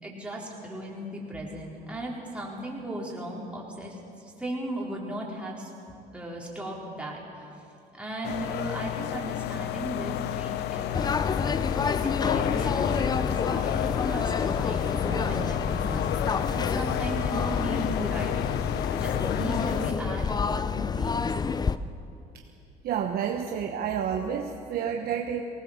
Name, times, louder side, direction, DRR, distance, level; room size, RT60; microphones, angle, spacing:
voice 1, 0.0-5.7 6.1-7.5 7.9-11.6 12.0-18.4 18.9-21.3, right 1 dB, 5° right, -4 dB, 4.3 m, -36 dB
sound 1, 8.2-19.9, left 13 dB, 80° left, 0.7 m, -31 dB
sound 2, 10.9-21.8, left 5 dB, 25° left, 0.6 m, -28 dB
voice 2, 22.8-25.4, right 8 dB, 65° right, 3 dB, 1.2 m, -30 dB
19.0 x 19.0 x 7.4 m, 2.7 s
cardioid pair, 110°, 17 cm